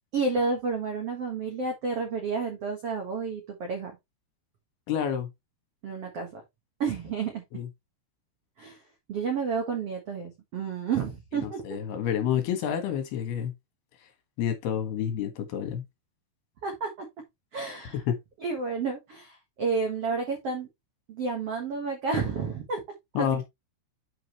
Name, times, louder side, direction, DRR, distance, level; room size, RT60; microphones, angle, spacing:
voice 1, 0.1-4.0 5.8-6.4 6.8-7.4 8.6-8.8 9.1-11.6 16.6-17.1 17.5-18.0 18.4-20.7 21.1-22.8 23.2-23.4, right 4 dB, 85° right, 1.3 m, -30 dB
voice 2, 4.9-5.3 7.5-7.7 11.3-13.5 14.4-15.8 17.9-18.1 23.1-23.4, left 9 dB, 65° left, 3.2 m, -29 dB
9.0 x 5.3 x 3.1 m
omnidirectional pair, 5.4 m